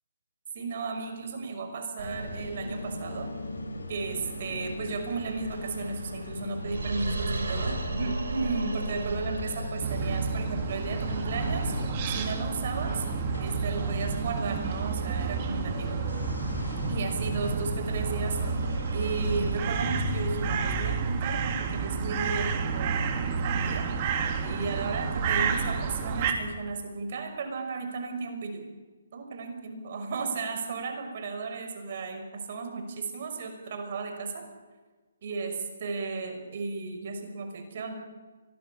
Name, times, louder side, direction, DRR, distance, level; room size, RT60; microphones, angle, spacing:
voice 1, 0.5-3.3 3.9-11.7 12.1-13.0 13.4-16.0 16.9-18.4 18.9-23.9 24.4-28.6 29.1-34.4 35.2-35.5 35.8-37.9, right 4 dB, 50° right, 5 dB, 5.8 m, -34 dB
sound 1, 2.0-20.8, left 2 dB, 90° left, 6.7 m, -40 dB
sound 2, 2.0-21.6, right 3 dB, 75° right, 7.4 m, -39 dB
sound 3, 9.8-26.3, right 5 dB, 35° right, 3.2 m, -30 dB
24.5 x 19.5 x 8.6 m, 1.3 s
hypercardioid pair, 145°, 0 cm